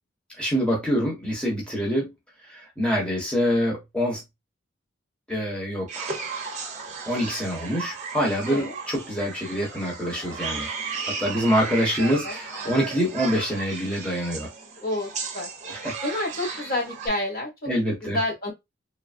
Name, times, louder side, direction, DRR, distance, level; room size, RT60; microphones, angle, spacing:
voice 1, 0.4-2.1 2.5-4.2 5.3-6.2 7.1-10.7 11.0-14.5 15.7-15.9 17.7-18.2, equal, 5° left, 0.9 m, -25 dB
sound 1, 5.9-17.1, right 5 dB, 40° right, 0.7 m, -35 dB
voice 2, 12.0-12.4 12.6-12.7 14.8-15.5 16.0-17.7 18.0-18.5, left 1 dB, 50° left, 1.6 m, -29 dB
3.2 x 2.0 x 2.5 m
head